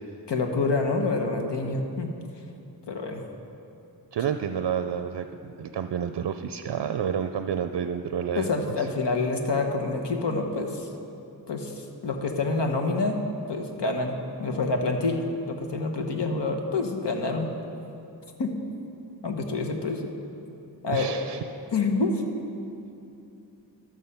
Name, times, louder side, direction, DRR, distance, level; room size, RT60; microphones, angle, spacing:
voice 1, 0.3-2.1 2.9-3.3 8.4-10.9 11.5-13.2 13.5-17.5 18.4-18.6 19.2-20.1 20.8-21.1 21.7-22.2, left 3 dB, 75° left, 4 dB, 1.1 m, -27 dB
voice 2, 4.1-8.5 20.9-21.4, right 8 dB, 65° right, 9 dB, 0.5 m, -29 dB
13.0 x 6.3 x 5.6 m, 2.7 s
cardioid pair, 55°, 43 cm